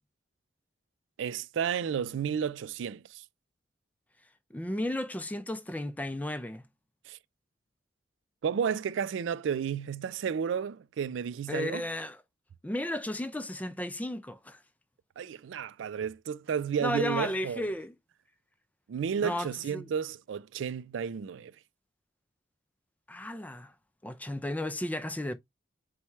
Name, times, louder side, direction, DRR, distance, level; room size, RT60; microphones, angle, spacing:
voice 1, 1.2-3.2 7.1-7.2 8.4-11.8 15.2-17.7 18.9-21.5, right 7 dB, 80° right, 0.3 m, -32 dB
voice 2, 4.5-6.7 11.5-12.2 12.6-14.6 16.8-17.9 19.2-19.9 23.1-23.7 24.0-25.3, left 1 dB, 10° left, 0.3 m, -34 dB
4.3 x 2.2 x 4.5 m
head